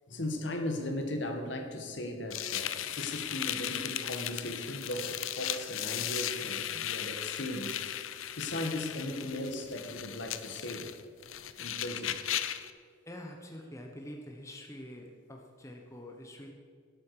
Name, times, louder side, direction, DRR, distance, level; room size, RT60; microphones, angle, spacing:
voice 1, 0.1-7.8 8.4-10.9 11.6-12.2, left 1 dB, 60° left, 4 dB, 1.7 m, -37 dB
sound 1, 2.3-12.7, left 11 dB, 80° left, 0.6 m, -36 dB
voice 2, 13.1-16.5, left 1 dB, 15° left, 2 dB, 1.0 m, -46 dB
12.0 x 12.0 x 4.9 m, 2.1 s
head